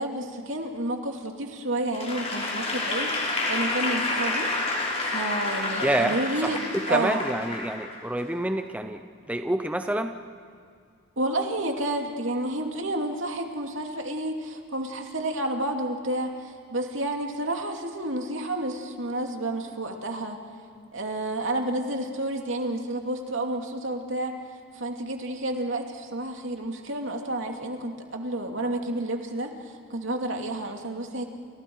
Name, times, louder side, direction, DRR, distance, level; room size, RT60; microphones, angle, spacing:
voice 1, 0.0-4.5 5.1-6.6 6.9-7.2 11.2-20.4 20.9-24.3 24.7-31.2, right 1 dB, 70° right, 2 dB, 2.8 m, -30 dB
Applause / Crowd, 1.9-8.2, left 2 dB, 30° left, 4.4 m, -29 dB
voice 2, 5.8-6.6 6.9-9.0 9.3-10.1, right 1 dB, 5° right, 6 dB, 0.7 m, -27 dB
29.5 x 29.0 x 4.8 m, 2.3 s
head